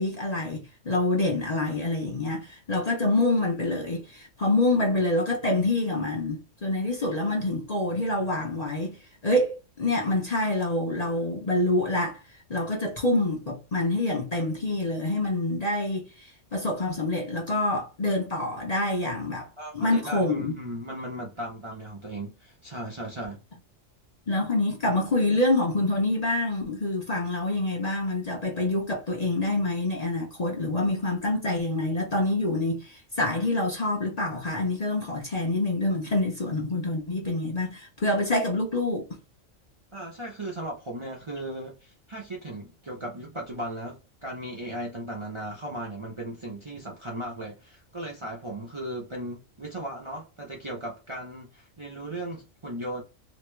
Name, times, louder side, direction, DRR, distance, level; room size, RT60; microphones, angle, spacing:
voice 1, 0.0-9.0 9.2-12.2 12.5-19.5 19.7-20.5 24.3-39.1, left 2 dB, 35° left, 0.8 m, -26 dB
voice 2, 19.6-23.4 39.9-53.0, right 1 dB, 30° right, 0.7 m, -37 dB
2.9 x 2.9 x 3.2 m
omnidirectional pair, 1.3 m